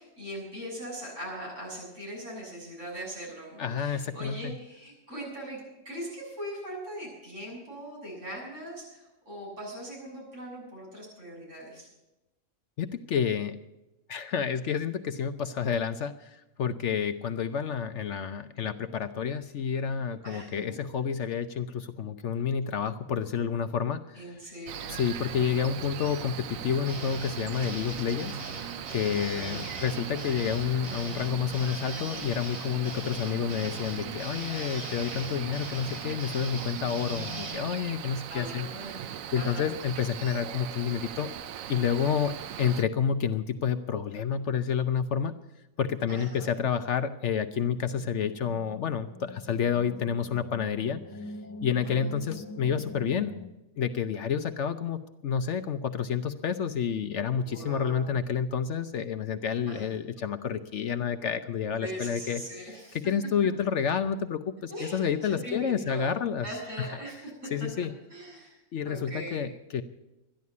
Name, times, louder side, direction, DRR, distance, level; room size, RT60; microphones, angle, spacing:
voice 1, 0.0-5.6 5.8-11.9 20.2-20.8 24.1-25.0 25.3-25.8 29.3-29.9 38.3-39.1 39.3-39.7 46.1-46.5 51.8-52.4 57.4-58.1 59.7-59.9 61.8-63.0 64.7-66.1 66.4-67.3 68.1-69.4, right 1 dB, 55° right, -5 dB, 7.7 m, -41 dB
voice 2, 3.6-4.5 12.8-13.6 14.1-24.3 24.9-28.4 28.9-41.3 41.7-42.3 42.6-45.3 45.8-51.0 51.6-53.3 53.8-62.8 63.0-66.4 66.8-66.9 67.5-67.9 68.7-69.8, left 7 dB, 60° left, 10 dB, 0.9 m, -29 dB
Cricket, 24.7-42.8, right 10 dB, 75° right, 1.1 m, -39 dB
sound 1, 26.8-37.5, right 2 dB, 30° right, 5.5 m, -41 dB
sound 2, 47.7-53.5, left 3 dB, 20° left, 0.7 m, -44 dB
13.0 x 11.0 x 8.4 m, 0.99 s
omnidirectional pair, 1.5 m